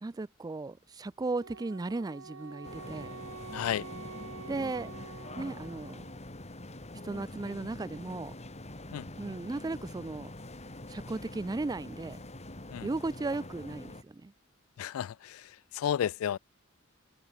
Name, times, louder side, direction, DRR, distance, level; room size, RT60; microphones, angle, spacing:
voice 1, 0.0-3.1 4.5-4.9 5.3-6.0 7.0-8.3 9.2-10.3 10.9-12.2 12.8-14.3, right 3 dB, 20° right, 0.4 m, -36 dB
Wind instrument woodwind instrument, 1.4-6.2, right 4 dB, 85° right, 1.3 m, -47 dB
sound 1, 2.6-14.0, left 1 dB, 35° left, 4.0 m, -45 dB
voice 2, 3.5-3.9 8.9-9.0 12.7-12.9 14.8-15.5 15.7-16.4, left 9 dB, 85° left, 0.3 m, -32 dB
open air
head